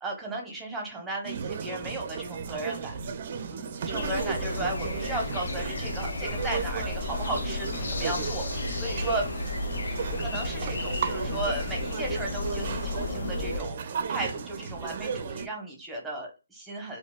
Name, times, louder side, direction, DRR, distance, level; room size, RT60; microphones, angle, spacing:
voice 1, 0.0-2.9 3.5-9.2 10.2-13.8 14.1-17.0, right 2 dB, 5° right, -1 dB, 0.8 m, -35 dB
sound 1, 1.2-15.5, right 6 dB, 45° right, 0.4 m, -35 dB
sound 2, 3.9-13.6, left 3 dB, 65° left, 0.6 m, -33 dB
3.9 x 2.1 x 2.3 m, 0.29 s
figure-of-eight pair, 145°, 0 cm